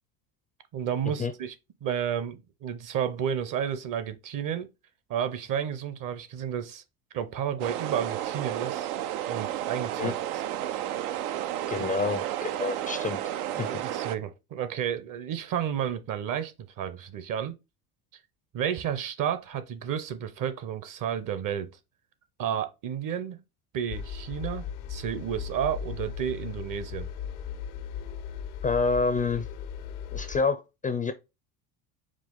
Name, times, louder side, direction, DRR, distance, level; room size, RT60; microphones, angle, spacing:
voice 1, 0.7-1.5 1.8-4.7 5.1-6.8 7.1-8.9 9.3-10.4 11.8-11.9 13.6-17.5 18.5-21.8 22.4-23.4 23.7-27.1, right 9 dB, 45° right, 0.8 m, -31 dB
sound 1, 7.6-14.2, right 12 dB, 85° right, 0.6 m, -32 dB
voice 2, 11.7-13.2 13.6-13.7 28.6-29.5 30.1-31.1, left 4 dB, 20° left, 0.4 m, -27 dB
sound 2, 23.9-30.4, left 8 dB, 85° left, 0.7 m, -37 dB
4.9 x 2.3 x 3.8 m
supercardioid pair, 90°, 43 cm